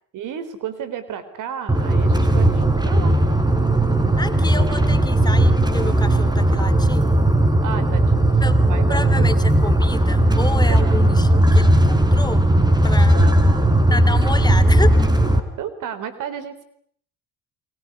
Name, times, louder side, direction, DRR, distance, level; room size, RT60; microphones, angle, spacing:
voice 1, 0.1-3.2 7.6-8.4 8.7-9.3 10.5-11.5 13.1-13.8 15.6-16.6, right 8 dB, 70° right, 14 dB, 4.1 m, -33 dB
sound 1, 1.7-15.4, right 1 dB, 15° right, 3.9 m, -17 dB
voice 2, 4.2-7.2 8.4-12.4 12.8-13.2 13.9-15.0, left 2 dB, 10° left, 11 dB, 3.0 m, -29 dB
29.5 x 20.5 x 9.6 m, 0.65 s
supercardioid pair, 80°, 33 cm